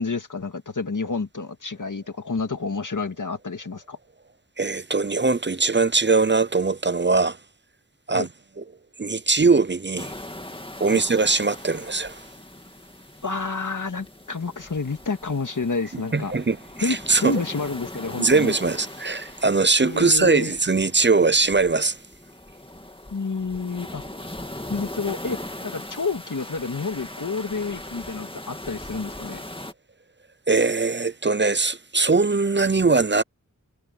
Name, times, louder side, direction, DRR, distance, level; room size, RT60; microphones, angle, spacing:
voice 1, 0.0-4.0 8.1-8.3 10.9-11.0 13.2-16.3 16.8-18.6 19.8-20.5 23.1-24.0 24.7-29.4, left 4 dB, 70° left, 2.1 m, -29 dB
voice 2, 4.6-7.4 8.1-8.3 8.6-8.7 9.0-10.2 10.8-12.2 16.1-17.4 18.2-22.0 30.5-33.2, right 4 dB, 35° right, 0.7 m, -21 dB
sound 1, 10.0-29.7, left 1 dB, 15° left, 2.1 m, -40 dB
wide cardioid pair, 40°, 32 cm